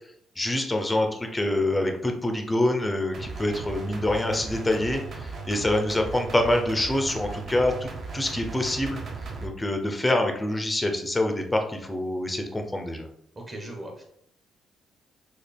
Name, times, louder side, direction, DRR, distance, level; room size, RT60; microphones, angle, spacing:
voice 1, 0.4-9.0 9.4-13.1, left 1 dB, 10° left, 4 dB, 0.6 m, -26 dB
sound 1, 3.1-9.5, right 4 dB, 45° right, 1.0 m, -37 dB
voice 2, 13.4-14.0, right 1 dB, 20° right, 1 dB, 0.9 m, -38 dB
6.3 x 2.4 x 3.4 m, 0.70 s
cardioid pair, 150°, 0 cm